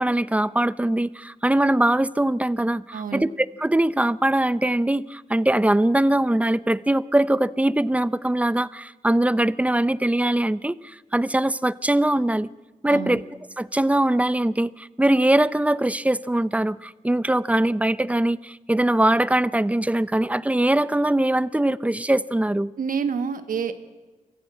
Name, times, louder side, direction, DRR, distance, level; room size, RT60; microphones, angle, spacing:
voice 1, 0.0-12.5 12.8-13.2 13.6-22.7, right 1 dB, 10° right, 18 dB, 0.6 m, -22 dB
voice 2, 2.9-3.2 12.9-13.2 22.8-23.8, right 6 dB, 85° right, 10 dB, 1.6 m, -28 dB
24.0 x 15.5 x 7.6 m, 1.2 s
cardioid pair, 80°, 14 cm